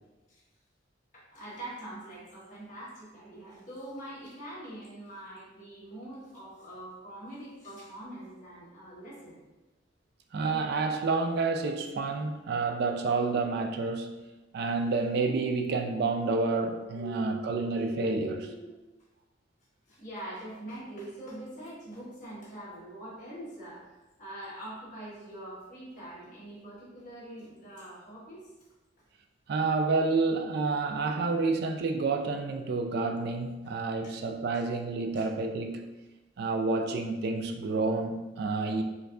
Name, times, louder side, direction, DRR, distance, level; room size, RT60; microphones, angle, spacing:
voice 1, 1.1-9.4 16.9-18.7 19.9-28.5 33.6-33.7 34.0-34.1 35.1-35.3, right 1 dB, 40° left, 1.4 m, -44 dB
voice 2, 10.3-14.2 14.5-18.5 29.5-35.9 36.4-38.8, right 3 dB, 60° right, 0.3 m, -29 dB
4.5 x 2.6 x 2.3 m
head